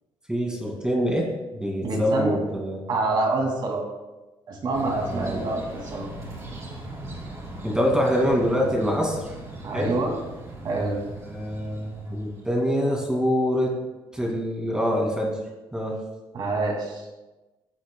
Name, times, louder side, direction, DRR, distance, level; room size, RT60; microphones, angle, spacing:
voice 1, 0.3-2.8 5.0-5.5 7.6-9.3 9.7-10.0 11.3-13.8 14.1-15.4 15.7-16.4, equal, 10° right, -1 dB, 2.3 m, -25 dB
voice 2, 1.8-2.4 2.9-3.8 4.5-6.1 9.6-10.2 10.6-11.0 16.3-17.1, right 2 dB, 50° right, 1 dB, 2.4 m, -26 dB
sound 1, 4.7-12.8, right 1 dB, 35° right, 3.1 m, -39 dB
15.5 x 8.1 x 2.3 m, 1.1 s
cardioid pair, 130°, 10 cm